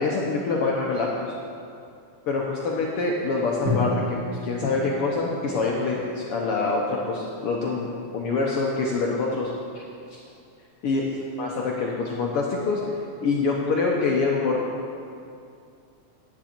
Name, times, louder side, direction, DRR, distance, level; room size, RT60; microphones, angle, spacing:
voice 1, 0.0-1.3 2.3-9.5 10.1-10.2 10.8-11.0 11.4-12.8 13.2-14.6, left 3 dB, 70° left, -2 dB, 1.4 m, -25 dB
Drum, 3.7-7.7, left 2 dB, 45° left, 1.7 m, -32 dB
10.0 x 9.8 x 4.4 m, 2.4 s
omnidirectional pair, 3.5 m